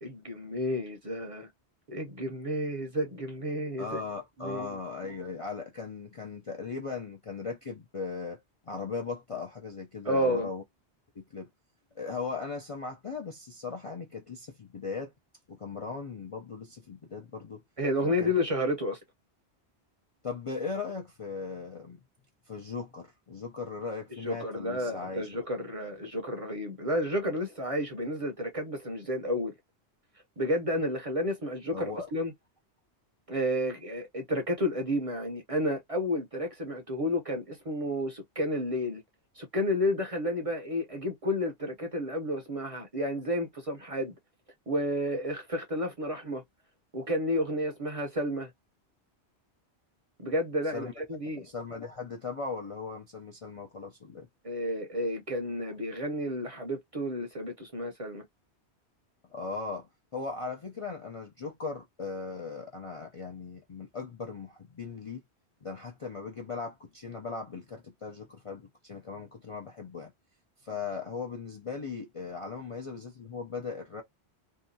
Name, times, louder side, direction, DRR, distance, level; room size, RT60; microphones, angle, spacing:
voice 1, 0.0-1.5 1.9-4.0 4.4-4.8 10.0-10.5 17.8-19.0 24.2-29.5 30.4-32.3 33.3-39.0 39.3-44.2 44.7-46.4 46.9-48.5 50.2-51.5 54.4-58.2, left 1 dB, 40° right, 0.6 m, -31 dB
voice 2, 3.8-10.6 11.2-11.5 11.9-15.1 15.5-17.6 18.0-18.3 20.2-22.0 22.5-25.4 31.7-32.1 50.7-50.9 51.3-54.3 59.3-65.2 65.6-70.1 70.6-74.0, left 4 dB, 45° left, 0.4 m, -38 dB
2.7 x 2.2 x 2.6 m
omnidirectional pair, 1.1 m